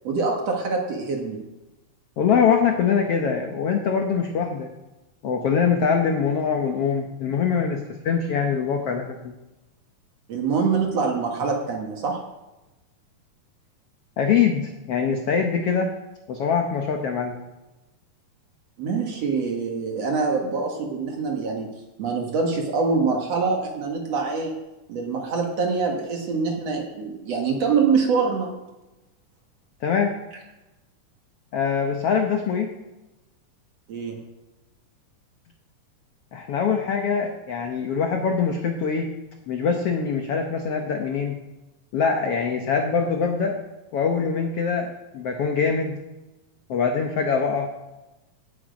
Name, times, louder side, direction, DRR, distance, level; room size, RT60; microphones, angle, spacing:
voice 1, 0.0-1.4 10.3-12.2 18.8-21.7 22.0-24.5 24.9-28.5 33.9-34.2, right 4 dB, 55° right, 1 dB, 2.3 m, -24 dB
voice 2, 2.2-4.7 5.2-9.3 14.2-15.9 16.3-17.4 29.8-30.1 31.5-32.7 36.3-39.1 39.5-41.4 41.9-43.6 43.9-46.0 46.7-47.7, left 6 dB, 80° left, 3 dB, 1.3 m, -23 dB
17.0 x 7.6 x 5.2 m, 1.0 s
omnidirectional pair, 4.1 m